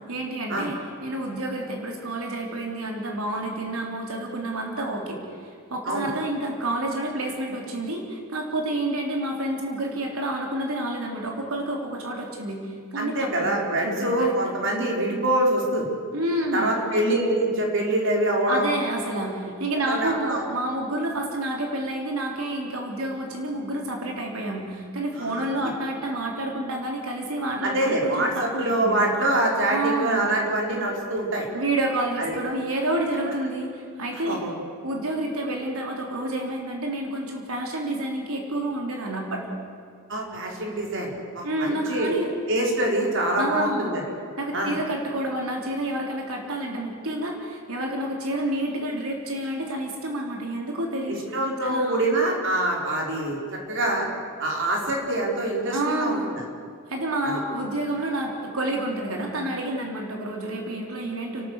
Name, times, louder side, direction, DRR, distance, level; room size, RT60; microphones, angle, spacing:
voice 1, 0.1-12.6 12.9-14.4 16.1-16.7 18.5-29.0 29.7-30.3 31.5-34.4 34.8-39.6 41.4-42.3 43.4-43.9 44.4-51.4 51.6-52.0 55.7-56.3 56.9-61.5, right 1 dB, 85° right, 0 dB, 3.6 m, -29 dB
voice 2, 13.0-15.9 16.5-18.7 19.9-20.4 25.2-25.4 27.6-31.5 32.2-32.4 33.3-33.4 34.1-34.6 40.1-42.1 42.5-44.0 44.5-44.7 51.1-53.4 53.7-54.1 54.4-56.4 57.2-57.4, right 1 dB, 60° right, -1 dB, 4.3 m, -25 dB
30.0 x 13.0 x 8.3 m, 2.1 s
head